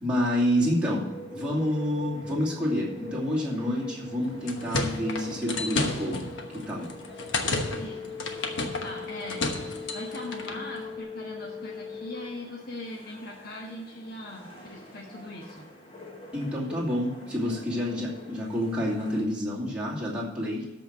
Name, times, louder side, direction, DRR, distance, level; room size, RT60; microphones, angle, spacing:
voice 1, 0.0-6.3 6.5-6.9 16.3-20.8, equal, 5° right, -5 dB, 2.4 m, -28 dB
sound 1, 1.0-19.2, equal, 30° left, 1.5 m, -45 dB
sound 2, 4.2-10.6, left 2 dB, 70° left, 1.2 m, -32 dB
sound 3, 7.4-12.4, left 6 dB, 10° left, 2.8 m, -40 dB
voice 2, 8.8-9.5 9.9-15.6, left 1 dB, 50° left, -2 dB, 1.4 m, -40 dB
13.0 x 4.5 x 7.4 m, 1.1 s
head